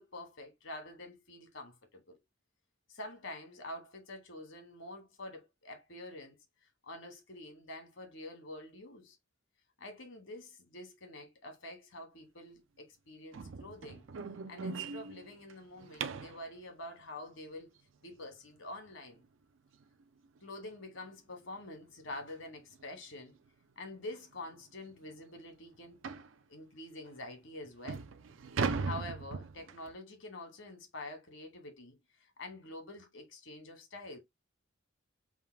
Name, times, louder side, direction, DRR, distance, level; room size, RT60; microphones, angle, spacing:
voice 1, 0.0-2.2 2.9-6.4 6.6-9.2 9.8-14.1 14.5-17.7 18.0-19.2 20.4-23.4 23.8-26.0 26.5-28.1 28.8-34.2, left 1 dB, 75° left, 1.6 m, -47 dB
sound 1, 13.3-16.4 19.2-19.3 19.8-20.0 20.4-20.5 20.9-21.0 22.1-22.3 22.7-22.8 23.5-23.6 23.9-24.0 24.5-24.6 26.0-26.3 27.1-27.2 27.6-29.9, right 4 dB, 85° right, 0.5 m, -38 dB
3.6 x 2.4 x 4.5 m
head